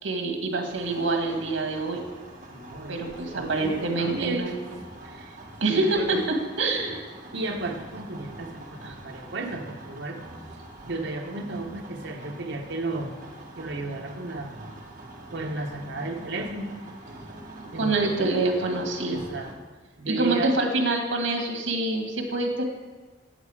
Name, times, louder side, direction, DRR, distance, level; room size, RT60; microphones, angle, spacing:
voice 1, 0.0-2.0 2.9-4.5 5.6-7.0 8.8-8.9 17.8-19.2 20.1-22.6, right 2 dB, 80° right, 2 dB, 1.7 m, -26 dB
sound 1, 0.7-19.5, right 1 dB, 40° right, 1.6 m, -44 dB
voice 2, 2.5-5.4 5.7-6.2 7.3-10.2 10.8-13.1 13.6-14.6 15.3-16.7 17.7-18.2 19.1-19.5 20.0-20.6, right 2 dB, 65° right, 3 dB, 1.1 m, -33 dB
8.2 x 8.0 x 4.8 m, 1.3 s
head